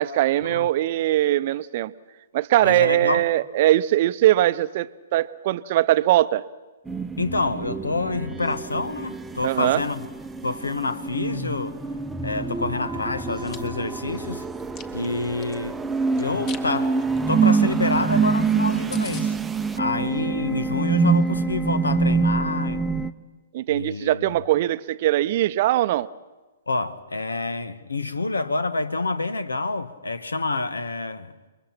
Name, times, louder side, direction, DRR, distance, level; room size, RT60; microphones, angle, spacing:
voice 1, 0.0-1.9 2.3-6.4 9.4-9.8 23.5-26.1, right 14 dB, 45° right, 0.7 m, -21 dB
voice 2, 2.6-3.3 7.2-10.1 10.4-11.8 12.2-14.5 14.9-15.8 16.2-17.0 17.3-19.3 19.8-22.8 23.7-24.3 26.7-31.3, left 3 dB, 80° left, 1.3 m, -27 dB
sound 1, 6.9-23.1, right 4 dB, 10° right, 0.8 m, -25 dB
Chewing mastication, 13.2-13.6 14.1-15.6 16.2-16.7 17.0-17.2 17.5-17.6 17.9-18.0 18.3-18.4 18.6-18.7 18.9-19.3, left 7 dB, 30° left, 1.7 m, -40 dB
29.0 x 22.5 x 5.9 m
figure-of-eight pair, 120°, 0 cm